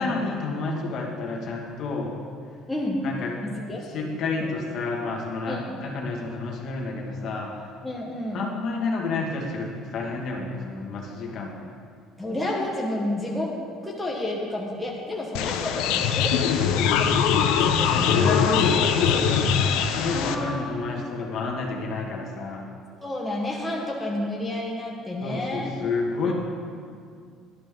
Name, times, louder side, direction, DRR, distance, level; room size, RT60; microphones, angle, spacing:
voice 1, 0.0-2.2 3.0-3.3 3.8-7.7 8.3-11.7 17.8-22.7 25.2-26.3, left 3 dB, 45° left, 0 dB, 1.9 m, -30 dB
voice 2, 2.7-3.0 3.4-4.1 4.4-4.5 5.5-5.8 7.8-8.4 12.2-13.5 13.8-18.7 20.1-20.9 23.0-25.7 26.2-26.3, left 1 dB, 5° left, -3 dB, 1.4 m, -31 dB
if you are here you are awesome, 15.3-20.3, left 7 dB, 90° left, 0.8 m, -22 dB
17.5 x 11.5 x 3.8 m, 2.2 s
cardioid pair, 155°, 0 cm